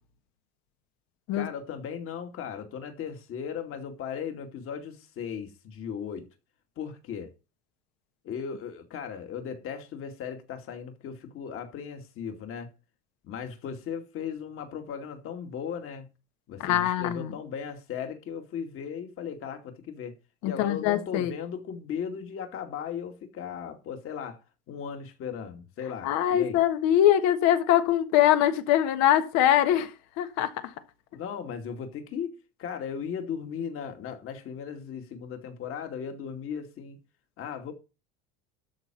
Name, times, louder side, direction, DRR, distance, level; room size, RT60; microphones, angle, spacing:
voice 1, 1.3-6.3 6.8-7.3 8.2-12.7 13.2-16.1 16.5-20.2 20.4-24.4 24.7-26.6 31.1-32.3 32.6-37.0 37.4-37.7, left 7 dB, 45° left, 2.4 m, -37 dB
voice 2, 16.6-17.3 20.4-21.3 26.0-29.9 30.2-30.7, left 11 dB, 60° left, 1.6 m, -23 dB
13.0 x 4.3 x 7.6 m
supercardioid pair, 120°, 30 cm